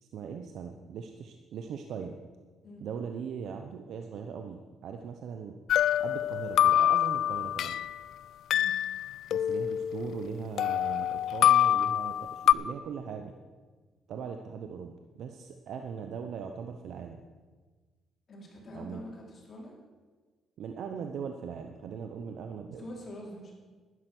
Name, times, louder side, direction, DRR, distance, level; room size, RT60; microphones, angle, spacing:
voice 1, 0.0-2.2 2.8-5.6 6.0-7.8 9.3-13.3 14.1-17.2 18.7-19.0 20.6-22.8, right 6 dB, 70° right, 5 dB, 0.9 m, -40 dB
sound 1, 5.7-8.0 8.5-10.3 10.6-12.5, left 11 dB, 75° left, 0.3 m, -26 dB
voice 2, 18.3-19.7 22.8-23.5, left 1 dB, 50° left, -1 dB, 3.9 m, -45 dB
11.0 x 11.0 x 6.1 m, 1.4 s
cardioid pair, 90°, 0 cm